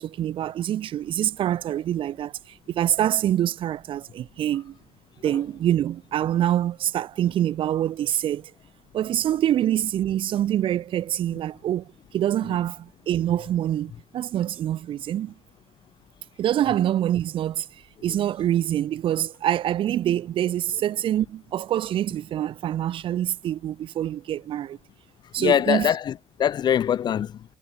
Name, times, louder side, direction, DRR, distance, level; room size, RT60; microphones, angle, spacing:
voice 1, 0.0-2.3 2.7-4.8 5.2-8.5 8.9-15.3 16.4-17.7 18.0-24.8 25.3-25.9, right 11 dB, 50° right, 3.2 m, -25 dB
voice 2, 25.4-26.1 26.4-27.4, left 9 dB, 40° left, 1.4 m, -23 dB
cardioid pair, 150°, 11 cm